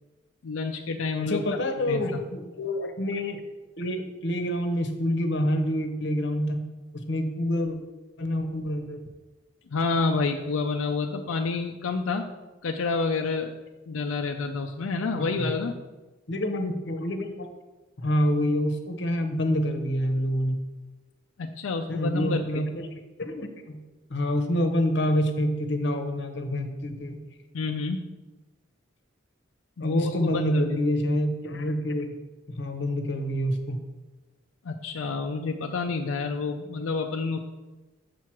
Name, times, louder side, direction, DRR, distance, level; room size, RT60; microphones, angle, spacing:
voice 1, 0.4-1.4 1.9-2.2 9.7-12.3 12.6-13.5 13.9-15.7 21.4-22.6 27.5-28.0 29.8-30.8 34.6-37.4, left 4 dB, 85° left, 3 dB, 0.5 m, -28 dB
voice 2, 1.2-3.4 3.8-6.6 6.9-7.8 8.2-9.0 15.2-15.5 16.3-17.5 18.0-20.6 21.9-23.8 24.1-27.2 29.8-32.1 32.6-33.8, equal, 60° left, 6 dB, 0.9 m, -27 dB
6.8 x 4.7 x 5.8 m, 1.2 s
head